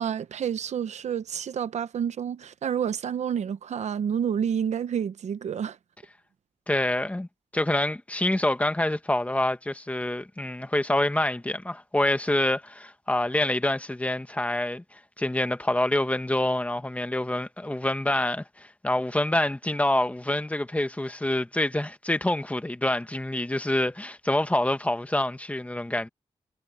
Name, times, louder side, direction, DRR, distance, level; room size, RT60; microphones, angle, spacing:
voice 1, 0.0-5.8, right 8 dB, 90° right, 0.9 m, -29 dB
voice 2, 6.7-7.3 7.5-26.1, left 1 dB, 10° left, 1.5 m, -26 dB
wide cardioid pair, 110°, 11 cm